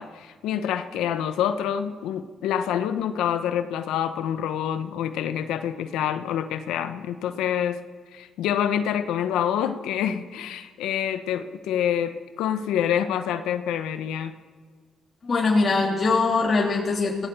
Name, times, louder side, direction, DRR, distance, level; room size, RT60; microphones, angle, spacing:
voice 1, 0.0-7.8 8.1-14.3, left 9 dB, 90° left, 9 dB, 1.0 m, -27 dB
voice 2, 15.2-17.3, left 3 dB, 40° left, -2 dB, 3.2 m, -22 dB
26.0 x 17.5 x 7.0 m, 1.5 s
cardioid pair, 90°, 0 cm